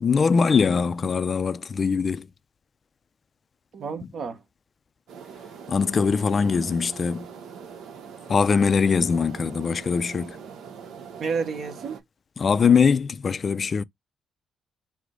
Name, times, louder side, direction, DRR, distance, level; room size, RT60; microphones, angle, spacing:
voice 1, 0.0-2.3 5.7-7.3 8.3-10.4 12.4-13.8, left 5 dB, 40° left, 0.4 m, -22 dB
voice 2, 3.7-4.4 11.2-12.0, right 5 dB, 60° right, 1.1 m, -30 dB
sound 1, 5.1-12.0, right 6 dB, 75° right, 0.9 m, -42 dB
4.7 x 2.1 x 3.8 m
cardioid pair, 90°, 0 cm